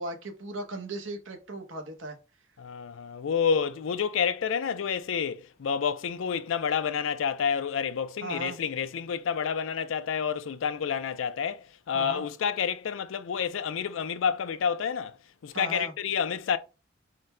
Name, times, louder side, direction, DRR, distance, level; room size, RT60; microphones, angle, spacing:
voice 1, 0.0-2.2 8.2-8.6 11.9-12.2 15.5-15.9, right 1 dB, 75° right, 0.9 m, -36 dB
voice 2, 2.6-15.2 15.4-16.6, left 7 dB, 85° left, 0.4 m, -29 dB
3.8 x 2.1 x 4.1 m
head